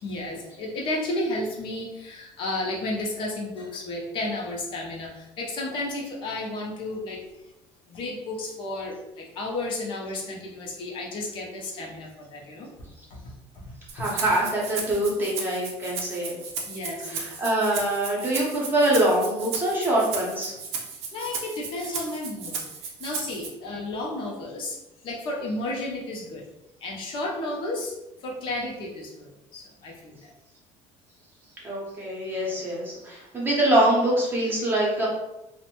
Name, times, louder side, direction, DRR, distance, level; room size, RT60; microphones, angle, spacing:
voice 1, 0.0-7.2 7.9-12.7 13.1-13.6 16.7-17.3 20.8-24.8 25.0-26.4 26.8-27.9 28.2-30.3, left 2 dB, 45° left, -2 dB, 0.6 m, -33 dB
voice 2, 13.9-16.4 17.1-20.5 31.6-35.1, right 1 dB, 20° right, -4 dB, 0.7 m, -24 dB
Rattle (instrument), 13.9-23.5, right 5 dB, 65° right, 0.5 m, -35 dB
2.5 x 2.1 x 2.8 m, 0.93 s
cardioid pair, 155°, 11 cm